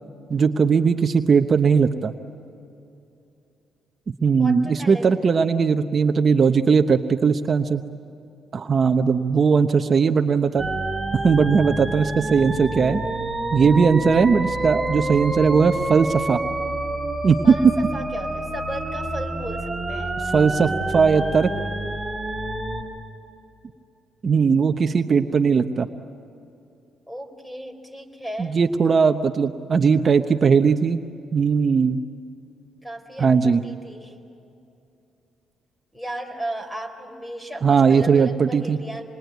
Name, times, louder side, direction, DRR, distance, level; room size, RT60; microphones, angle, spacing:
voice 1, 0.3-2.1 4.2-7.8 8.5-10.7 11.2-13.0 13.5-16.4 17.2-17.7 20.3-21.5 24.2-25.9 28.4-31.0 31.3-32.0 33.2-33.6 37.6-38.8, right 5 dB, 40° right, 6 dB, 0.9 m, -19 dB
voice 2, 4.4-5.2 17.4-20.2 27.1-28.6 32.8-34.2 35.9-39.0, right 1 dB, 10° left, 5 dB, 4.1 m, -35 dB
sound 1, 10.6-22.8, right 2 dB, 10° right, 3.6 m, -28 dB
27.0 x 22.0 x 9.4 m, 2.7 s
cardioid pair, 90°, 0 cm